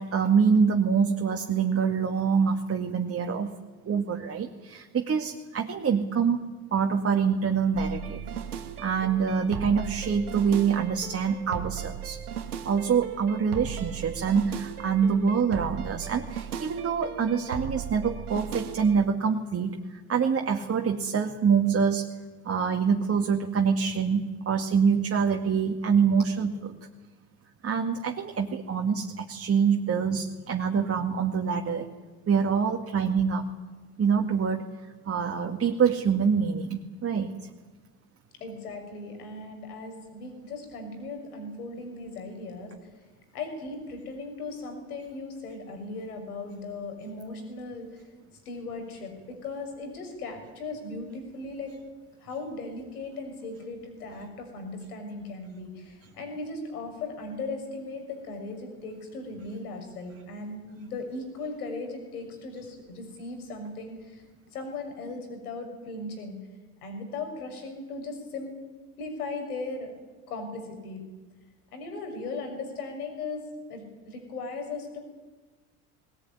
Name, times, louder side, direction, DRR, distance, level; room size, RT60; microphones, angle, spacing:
voice 1, 0.0-3.5 3.8-8.2 8.8-12.2 12.6-22.1 22.4-26.7 27.6-31.9 32.3-33.5 34.0-37.5, right 6 dB, 30° right, 3 dB, 2.4 m, -25 dB
sound 1, 7.7-19.0, right 8 dB, 85° right, 2.0 m, -37 dB
voice 2, 38.4-42.7 43.3-48.0 48.4-51.7 52.2-66.4 66.8-68.5 69.0-69.9 70.3-71.0 71.7-73.4 73.7-75.0, left 3 dB, 80° left, 5 dB, 6.5 m, -37 dB
20.0 x 19.5 x 9.8 m, 1.3 s
hypercardioid pair, 65°, 44 cm